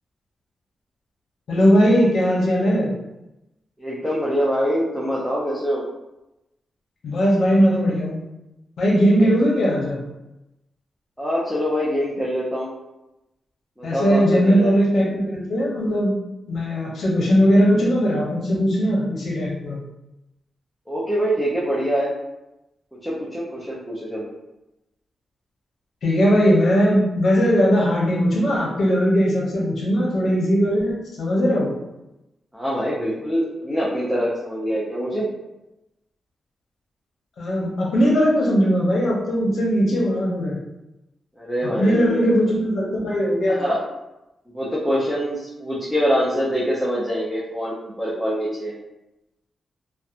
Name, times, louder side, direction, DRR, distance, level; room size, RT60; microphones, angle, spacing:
voice 1, 1.5-2.9 7.0-8.2 8.8-10.0 13.8-16.1 16.5-19.8 26.0-31.7 37.4-40.6 41.8-43.7, equal, 70° left, -3 dB, 0.7 m, -19 dB
voice 2, 3.8-5.8 9.2-9.3 11.2-12.7 13.8-14.7 20.9-22.1 23.0-24.3 32.5-35.3 41.4-42.3 43.5-43.8 44.5-48.7, equal, ahead, -7 dB, 0.5 m, -24 dB
2.8 x 2.1 x 2.4 m, 0.94 s
wide cardioid pair, 115°, 0 cm